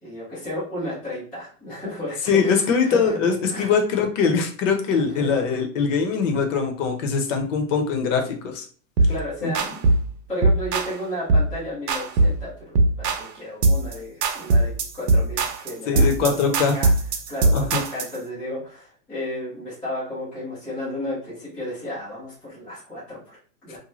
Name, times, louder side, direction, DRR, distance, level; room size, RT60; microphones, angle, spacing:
voice 1, 0.0-3.2 3.5-3.7 4.9-5.4 9.1-9.9 10.3-16.3 16.7-16.9 17.3-23.8, left 1 dB, 5° left, -13 dB, 0.3 m, -33 dB
voice 2, 2.3-8.7 9.4-9.5 15.9-16.8 17.5-17.8, left 5 dB, 55° left, 4 dB, 0.7 m, -22 dB
sound 1, 9.0-9.2 9.5-10.1 10.4-10.9 11.3-11.5 11.9-12.4 12.8-13.3 13.6-13.9 14.2-18.2, right 2 dB, 85° right, 0.7 m, -20 dB
2.6 x 2.1 x 3.0 m, 0.43 s
hypercardioid pair, 145°, 47 cm